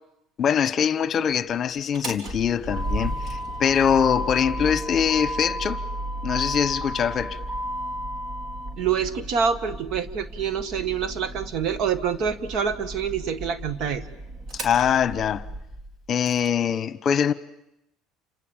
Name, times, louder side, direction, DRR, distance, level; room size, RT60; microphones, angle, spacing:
voice 1, 0.4-5.8 6.2-7.4 14.5-15.4 16.1-17.3, left 8 dB, 40° left, 1.0 m, -23 dB
Motor vehicle (road), 1.8-16.5, equal, 45° right, 4.0 m, -33 dB
voice 2, 8.8-14.0, right 7 dB, 60° right, 1.8 m, -26 dB
29.0 x 27.0 x 7.4 m
supercardioid pair, 105°, 0 cm